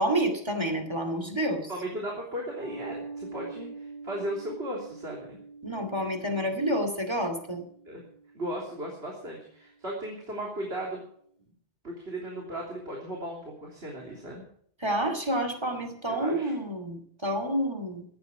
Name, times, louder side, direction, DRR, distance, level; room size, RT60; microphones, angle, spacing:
voice 1, 0.0-1.7 5.6-7.7 14.8-18.0, right 1 dB, 25° right, 6 dB, 2.6 m, -29 dB
voice 2, 1.7-5.4 7.9-8.0 8.3-11.0 11.8-14.5 16.1-16.5, right 1 dB, 85° right, -1 dB, 3.6 m, -36 dB
sound 1, 2.6-9.3, right 3 dB, 80° left, 3.7 m, -45 dB
17.0 x 12.5 x 4.9 m, 0.63 s
omnidirectional pair, 1.0 m